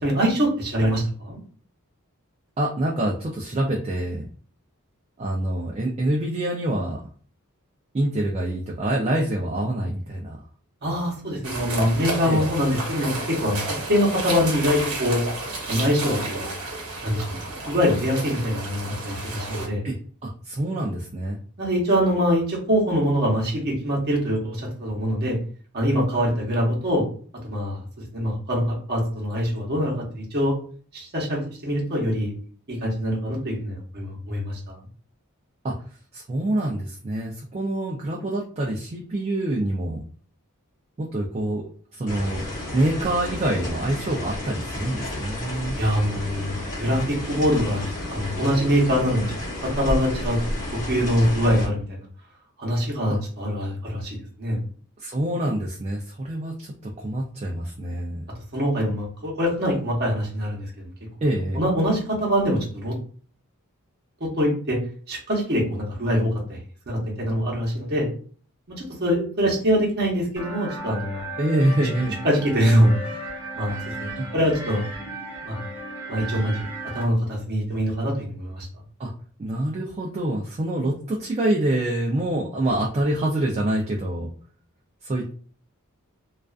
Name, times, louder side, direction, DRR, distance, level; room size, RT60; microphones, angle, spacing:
voice 1, 0.0-1.4 10.8-13.6 13.9-15.2 15.7-16.5 17.0-17.2 17.7-19.8 21.6-25.4 25.7-27.0 27.4-27.8 28.1-30.5 30.9-32.3 32.7-34.8 45.8-49.4 49.6-50.4 50.7-51.8 52.6-54.6 58.5-60.9 61.5-62.9 64.2-64.8 65.1-66.6 66.9-68.1 68.7-71.3 72.2-73.2 73.5-74.8 75.4-75.6 76.1-76.6 76.9-78.7, equal, 45° right, -2 dB, 0.8 m, -24 dB
voice 2, 2.6-4.3 5.2-7.0 7.9-10.4 12.2-12.5 19.8-20.0 20.2-21.4 35.6-35.7 36.1-40.0 41.0-42.5 42.7-45.8 53.1-53.2 55.0-58.2 61.2-61.6 71.4-72.1 74.1-74.3 79.0-79.1 79.4-84.3 85.0-85.3, right 1 dB, 30° right, -2 dB, 0.3 m, -26 dB
sound 1, 11.4-19.7, right 2 dB, 75° right, 0.8 m, -31 dB
sound 2, 42.1-51.7, left 1 dB, 35° left, 0.9 m, -32 dB
sound 3, 70.4-77.0, right 1 dB, 10° right, 0.8 m, -35 dB
2.3 x 2.3 x 2.3 m, 0.44 s
head